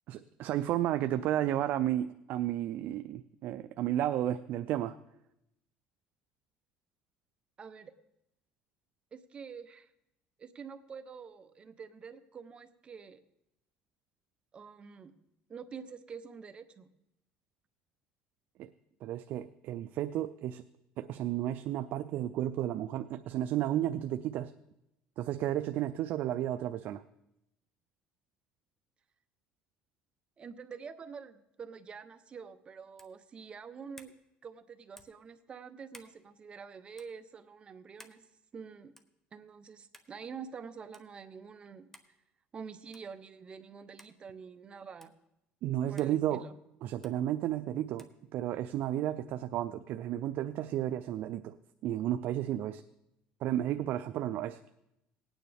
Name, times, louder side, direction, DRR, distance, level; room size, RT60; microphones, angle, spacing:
voice 1, 0.1-4.9 18.6-18.7 19.0-20.6 21.0-24.5 25.2-27.0 45.6-46.4 46.8-51.6 51.8-52.8 53.4-54.7, right 12 dB, 65° right, 11 dB, 0.4 m, -32 dB
voice 2, 7.6-7.9 9.1-9.9 10.4-13.2 14.5-15.1 15.5-16.9 30.4-34.1 34.4-38.2 38.5-38.9 39.3-41.9 42.5-45.1 45.8-46.6, right 6 dB, 30° right, 10 dB, 0.8 m, -47 dB
sound 1, 32.9-33.2 33.9-34.2 34.9-35.2 35.9-36.2 36.9-37.1 38.0-38.2 39.0-39.2 39.9-40.1 40.9-41.1 41.9-42.1 42.9-43.1 44.0-44.1 45.0-45.1 46.0-46.1 47.0-47.2 48.0-48.2, left 1 dB, 10° left, 0.9 m, -55 dB
18.5 x 9.2 x 3.4 m, 0.85 s
cardioid pair, 120°, 3 cm